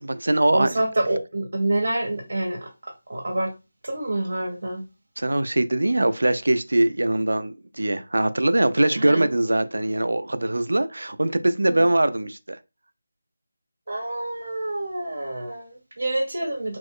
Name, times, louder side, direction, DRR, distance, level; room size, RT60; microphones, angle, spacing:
voice 1, 0.0-0.8 5.2-12.6, right 1 dB, 90° right, 0.3 m, -22 dB
voice 2, 0.5-2.7 3.1-3.5 3.8-4.8 8.9-9.3 11.7-11.9 13.9-16.8, right 1 dB, 70° right, 0.8 m, -27 dB
3.0 x 2.0 x 3.4 m
figure-of-eight pair, 170°, 0 cm